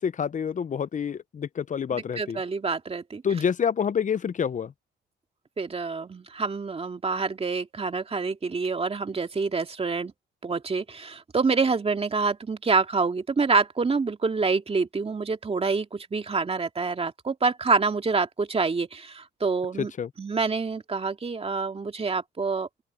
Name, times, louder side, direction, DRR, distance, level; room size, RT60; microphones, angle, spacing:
voice 1, 0.0-2.4 3.2-4.7 19.8-20.1, left 7 dB, 40° left, 0.7 m, -27 dB
voice 2, 2.2-3.2 5.6-10.1 10.4-19.9 20.2-22.7, right 4 dB, 30° right, 2.4 m, -27 dB
open air
cardioid pair, 90°, 20 cm